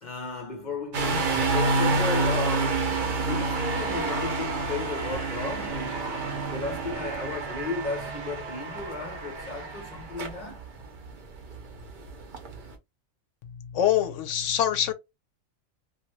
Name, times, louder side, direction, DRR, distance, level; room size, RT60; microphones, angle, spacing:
voice 1, 0.0-2.9 3.2-10.6, left 3 dB, 45° left, 0.7 m, -34 dB
sound 1, 0.9-12.7, right 3 dB, 50° right, 0.7 m, -29 dB
Bowed string instrument, 2.7-9.0 9.4-9.5, right 8 dB, 90° right, 1.0 m, -44 dB
voice 2, 13.4-14.9, left 10 dB, 70° left, 0.9 m, -25 dB
2.6 x 2.4 x 2.9 m
omnidirectional pair, 1.4 m